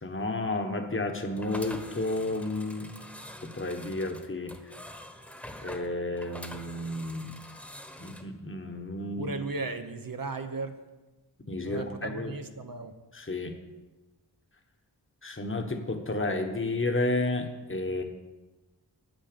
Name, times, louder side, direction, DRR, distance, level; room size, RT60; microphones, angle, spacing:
voice 1, 0.0-2.9 3.4-4.5 5.6-7.4 8.0-9.3 11.5-12.3 13.1-13.6 15.2-18.0, left 2 dB, 30° left, 4 dB, 1.4 m, -31 dB
sound 1, 1.3-8.2, left 1 dB, 5° left, 1.4 m, -45 dB
voice 2, 9.2-10.7 11.6-13.0, right 3 dB, 50° right, 7 dB, 1.0 m, -36 dB
9.2 x 9.0 x 6.9 m, 1.1 s
wide cardioid pair, 65°, 43 cm